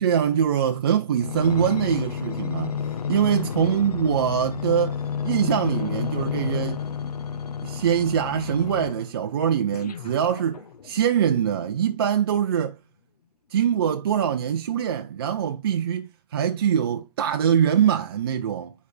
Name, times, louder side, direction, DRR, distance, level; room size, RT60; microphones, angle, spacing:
voice 1, 0.0-5.0 5.2-6.8 7.6-12.8 13.5-18.7, right 8 dB, 35° right, 0.6 m, -23 dB
sound 1, 1.2-9.1 9.7-11.0 11.6-11.7, left 7 dB, 65° left, 1.0 m, -31 dB
7.7 x 4.8 x 3.3 m
hypercardioid pair, 165°, 21 cm